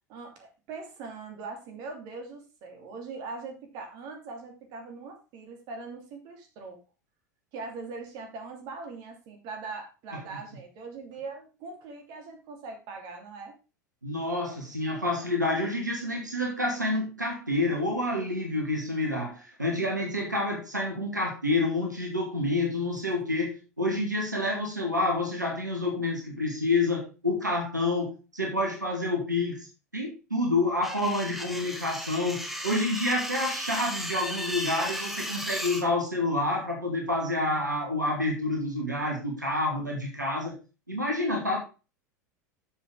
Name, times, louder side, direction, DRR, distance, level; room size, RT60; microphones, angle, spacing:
voice 1, 0.1-6.8 7.5-13.5, right 4 dB, 45° right, 3 dB, 2.9 m, -41 dB
voice 2, 14.0-29.7 29.9-40.5 40.9-41.6, left 2 dB, 85° right, 0 dB, 2.3 m, -28 dB
sound 1, 30.8-35.8, equal, ahead, 1.6 m, -35 dB
9.8 x 7.2 x 3.8 m, 0.31 s
figure-of-eight pair, 80°, 9 cm